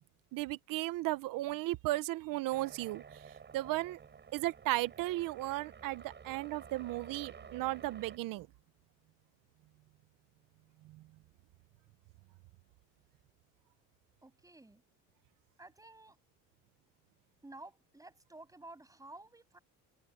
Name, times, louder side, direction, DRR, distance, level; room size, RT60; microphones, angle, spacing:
voice 1, 0.3-3.0 3.5-4.0 4.3-8.5, right 18 dB, 85° right, 0.9 m, -35 dB
sound 1, 2.5-8.2, right 6 dB, 35° right, 7.5 m, -52 dB
voice 2, 14.2-14.8 15.6-16.2 17.4-19.6, right 2 dB, 10° right, 7.6 m, -53 dB
cardioid pair, 135°, 32 cm